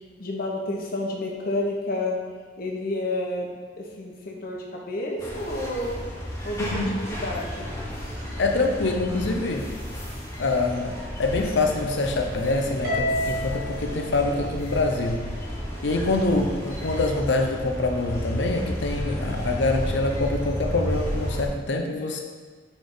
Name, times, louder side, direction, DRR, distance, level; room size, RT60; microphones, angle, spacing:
voice 1, 0.2-2.2 2.6-3.5 3.8-5.9 6.4-6.8 7.1-7.7, left 1 dB, 55° left, -1 dB, 1.0 m, -30 dB
sound 1, 5.2-21.5, equal, 15° left, 1.1 m, -32 dB
voice 2, 6.6-6.9 8.4-9.7 10.4-15.2 15.8-22.2, left 2 dB, 85° left, 3 dB, 0.7 m, -25 dB
Harp, 12.8-15.3, left 1 dB, 65° right, 1.3 m, -30 dB
7.1 x 3.5 x 3.9 m, 1.5 s
head